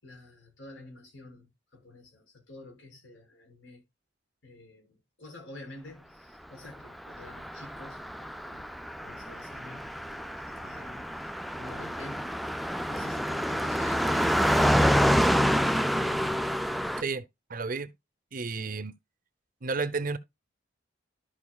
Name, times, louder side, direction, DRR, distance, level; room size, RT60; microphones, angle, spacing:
voice 1, 0.0-3.8 4.4-12.3 12.9-16.4, left 2 dB, 80° left, 5.5 m, -48 dB
Car passing by, 7.1-17.0, equal, ahead, 0.4 m, -27 dB
voice 2, 17.5-17.9 18.3-18.9 19.6-20.2, right 4 dB, 45° right, 0.7 m, -31 dB
13.0 x 5.4 x 2.3 m
head